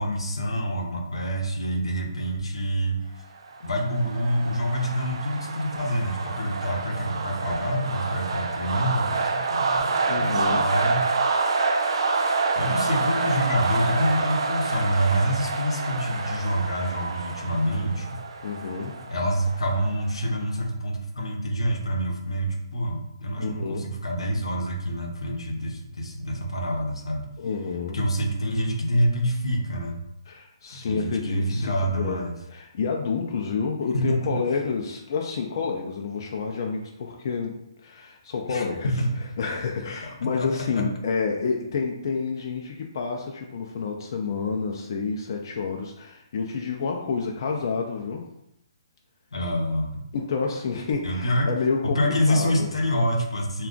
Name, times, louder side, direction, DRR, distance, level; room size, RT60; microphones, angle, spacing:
voice 1, 0.0-3.0 3.6-11.1 12.5-18.2 19.1-27.3 27.9-30.0 30.7-32.3 33.9-34.3 38.5-39.1 40.4-40.8 49.3-50.0 51.0-51.5 51.8-53.7, equal, 90° left, 2 dB, 0.7 m, -27 dB
sound 1, 3.5-20.1, right 4 dB, 70° right, 0.4 m, -27 dB
voice 2, 10.1-10.7 18.4-19.1 23.4-23.9 27.4-28.0 30.3-32.2 32.5-37.5 37.8-38.9 39.4-48.3 50.1-52.7, left 5 dB, 50° left, 1 dB, 0.4 m, -29 dB
2.4 x 2.2 x 3.7 m, 0.80 s
hypercardioid pair, 155°, 3 cm